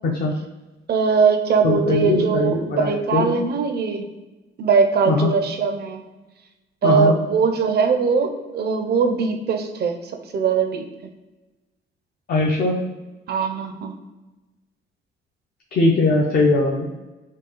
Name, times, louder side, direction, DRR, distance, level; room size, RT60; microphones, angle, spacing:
voice 1, 0.0-0.3 1.6-3.3 5.1-5.3 6.8-7.2 12.3-12.8 15.7-16.9, left 2 dB, 55° left, -2 dB, 0.6 m, -20 dB
voice 2, 0.9-4.1 4.6-6.0 6.8-10.0 10.3-10.9 13.3-13.9, right 5 dB, 55° right, 6 dB, 0.5 m, -20 dB
4.5 x 2.3 x 3.0 m, 1.1 s
cardioid pair, 90°, 20 cm